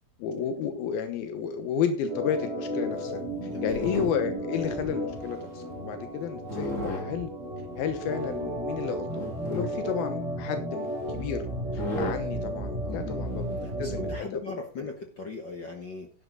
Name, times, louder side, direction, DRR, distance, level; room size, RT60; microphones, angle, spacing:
voice 1, 0.2-7.3 7.8-11.5 11.7-13.5 13.8-14.4, left 7 dB, 85° left, 8 dB, 2.9 m, -32 dB
Organ, 2.1-14.2, right 1 dB, 20° right, 2.8 m, -34 dB
sound 1, 3.4-4.4 5.0-5.8 6.5-7.1 8.0-8.1 9.1-9.7 10.8-10.9 11.2-11.3 11.7-12.2 13.5-13.7, left 1 dB, 30° left, 1.7 m, -34 dB
voice 2, 3.5-3.9 12.8-13.2 13.6-16.1, left 4 dB, 60° left, 3 dB, 1.1 m, -38 dB
11.0 x 11.0 x 3.9 m, 0.35 s
omnidirectional pair, 4.2 m